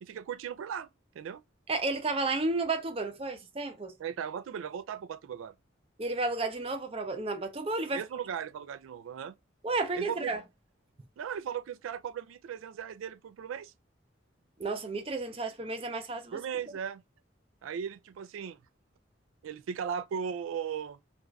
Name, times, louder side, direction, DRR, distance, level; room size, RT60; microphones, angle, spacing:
voice 1, 0.0-0.9 1.1-1.4 4.0-5.5 7.9-9.4 9.9-10.3 11.2-13.7 16.3-17.0 17.6-18.6 19.4-21.0, right 7 dB, 90° right, 0.3 m, -37 dB
voice 2, 1.7-3.9 6.0-8.0 9.6-10.4 14.6-16.4, right 3 dB, 30° right, 0.5 m, -32 dB
2.5 x 2.3 x 3.1 m
head